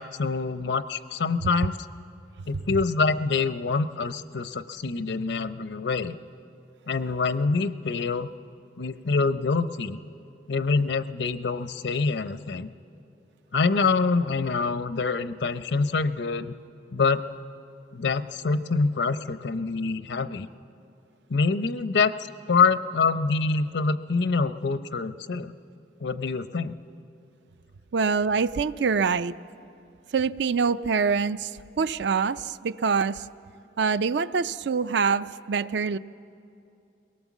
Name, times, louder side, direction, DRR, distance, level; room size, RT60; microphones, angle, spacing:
voice 1, 0.0-1.8 2.5-6.2 6.9-8.3 8.8-10.0 10.5-12.7 13.5-16.5 16.9-17.2 17.9-20.5 21.3-25.5 26.0-26.8, left 4 dB, 75° left, 12 dB, 0.6 m, -25 dB
voice 2, 27.9-29.3 30.1-31.5 31.8-33.2 33.8-36.0, right 5 dB, 70° right, 14 dB, 0.4 m, -25 dB
23.0 x 18.0 x 7.3 m, 2.6 s
head